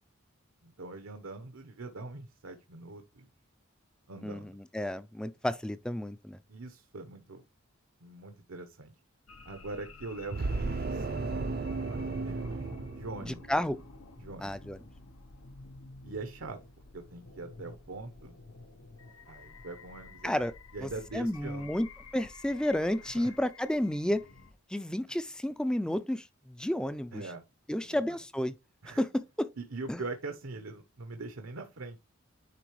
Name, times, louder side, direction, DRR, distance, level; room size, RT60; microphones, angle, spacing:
voice 1, 0.6-3.3 4.1-4.6 6.5-7.4 8.0-8.9 9.4-13.4 14.2-14.6 16.0-16.6 16.9-18.4 19.3-20.3 20.7-21.8 23.0-23.4 27.1-27.4 27.8-28.2 28.8-29.0 29.6-32.0, right 3 dB, 80° right, 0.9 m, -43 dB
voice 2, 4.2-6.4 13.2-13.8 14.4-14.8 20.2-20.5 20.8-20.9 21.1-21.9 22.1-24.2 24.7-27.2 27.7-28.5 29.0-29.5 29.9-30.0, left 1 dB, 5° left, 0.4 m, -31 dB
sound 1, 9.3-24.5, left 3 dB, 85° left, 0.9 m, -51 dB
sound 2, 10.3-13.8, right 3 dB, 45° right, 0.5 m, -34 dB
9.9 x 3.8 x 3.1 m
head